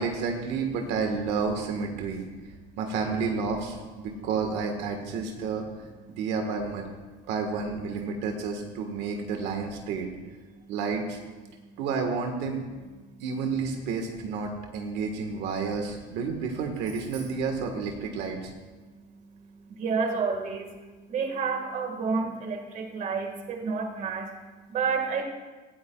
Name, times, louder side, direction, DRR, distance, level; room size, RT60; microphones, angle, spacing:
voice 1, 0.0-2.2 2.8-5.6 6.1-6.8 7.3-10.1 10.7-11.2 11.8-12.6 13.2-18.5, right 5 dB, 70° right, 3 dB, 1.5 m, -30 dB
voice 2, 2.3-2.8 6.1-6.2 7.1-7.3 8.1-8.2 10.4-10.8 11.5-11.8 13.0-13.2 14.8-15.0 18.8-25.2, right 5 dB, 45° right, 4 dB, 1.8 m, -32 dB
18.0 x 13.5 x 2.4 m, 1.3 s
cardioid pair, 135°, 18 cm